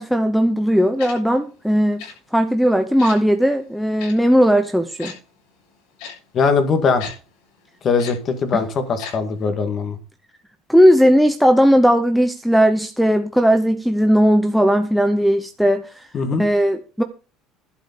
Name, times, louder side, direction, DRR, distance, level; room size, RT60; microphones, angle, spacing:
voice 1, 0.0-2.1 2.3-5.1 8.5-8.6 10.7-15.8 16.4-17.0, equal, ahead, 10 dB, 0.7 m, -17 dB
Tick-tock, 1.0-1.1 2.0-2.1 3.0-3.2 4.0-4.1 5.0-5.1 6.0-6.1 7.0-7.1 8.0-8.1 9.0-9.1 9.4-9.5, left 7 dB, 75° left, 7.3 m, -34 dB
voice 2, 6.3-7.1 7.8-10.0 16.1-16.4, left 5 dB, 30° left, 9 dB, 1.8 m, -20 dB
11.5 x 5.1 x 8.4 m, 0.35 s
cardioid pair, 165°, 0 cm